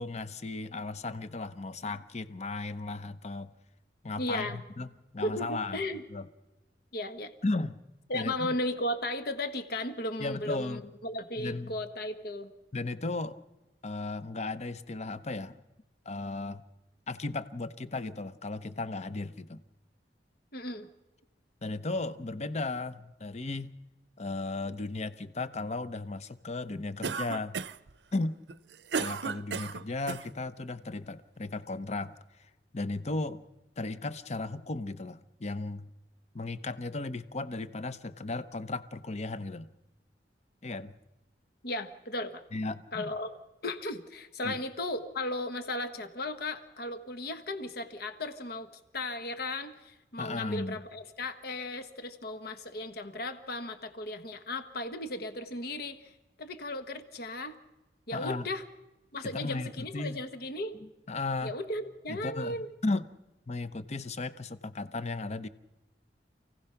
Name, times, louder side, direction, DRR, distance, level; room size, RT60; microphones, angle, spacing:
voice 1, 0.0-3.5 4.0-5.8 6.1-6.3 7.4-7.8 8.1-8.5 10.2-10.9 11.4-11.7 12.7-13.4 13.8-15.6 16.1-16.6 17.1-19.6 21.6-23.7 24.2-27.6 28.1-28.4 29.0-32.1 32.7-33.4 33.8-35.9 36.3-39.7 40.6-40.9 42.5-43.1 44.4-44.6 50.2-50.8 58.1-58.5 59.3-60.2 61.1-61.6 62.1-62.6 62.8-63.1 63.5-65.5, left 3 dB, 40° left, 13 dB, 0.8 m, -35 dB
voice 2, 4.2-4.6 5.2-6.0 6.9-7.3 8.1-12.5 20.5-20.9 41.6-42.4 42.9-43.3 43.6-48.7 48.9-57.5 58.1-58.6 59.1-60.8 61.4-62.7, left 1 dB, 60° left, 9 dB, 1.4 m, -36 dB
Cough, 27.0-27.9 28.5-30.3, right 5 dB, 75° right, 0.6 m, -34 dB
28.5 x 16.5 x 5.8 m, 1.0 s
head